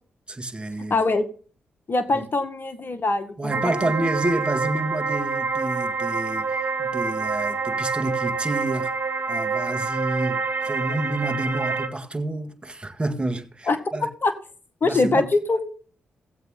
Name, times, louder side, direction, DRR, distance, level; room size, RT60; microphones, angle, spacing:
voice 1, 0.3-1.0 2.1-2.2 3.4-8.9 9.3-14.1 14.8-15.2, right 2 dB, 20° right, 1.9 m, -29 dB
voice 2, 0.9-1.3 1.9-3.5 13.7-13.8 14.2-14.3 14.8-15.7, left 3 dB, 50° left, 1.9 m, -22 dB
sound 1, 3.5-11.9, right 4 dB, 45° right, 1.3 m, -27 dB
17.0 x 8.0 x 3.7 m
supercardioid pair, 45°, 5 cm